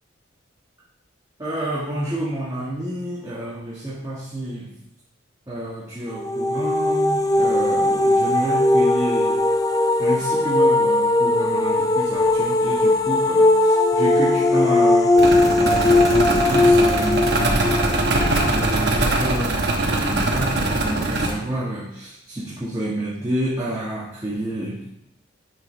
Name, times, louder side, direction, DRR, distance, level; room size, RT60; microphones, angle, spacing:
voice 1, 1.4-4.7 5.5-9.4 10.0-15.2 15.6-24.8, right 1 dB, 20° right, -8 dB, 1.4 m, -29 dB
sound 1, 6.1-19.0, left 2 dB, 20° left, 0.4 m, -19 dB
sound 2, 15.2-21.3, right 2 dB, 55° right, 1.2 m, -22 dB
10.5 x 5.1 x 3.2 m, 0.79 s
head